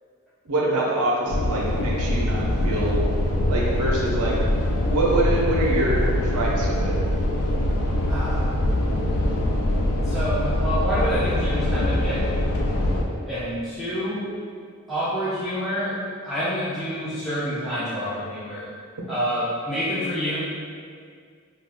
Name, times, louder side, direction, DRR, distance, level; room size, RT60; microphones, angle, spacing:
voice 1, 0.5-3.1 3.5-4.3 4.9-6.9, right 2 dB, 85° right, -3 dB, 0.5 m, -25 dB
sound 1, 1.3-13.0, left 1 dB, 80° left, 0.3 m, -23 dB
voice 2, 5.3-5.7 8.1-8.6 10.0-12.2 13.3-14.3 14.9-16.0 16.2-18.7 19.1-20.4, equal, ahead, -13 dB, 0.4 m, -28 dB
2.3 x 2.2 x 3.4 m, 2.1 s
head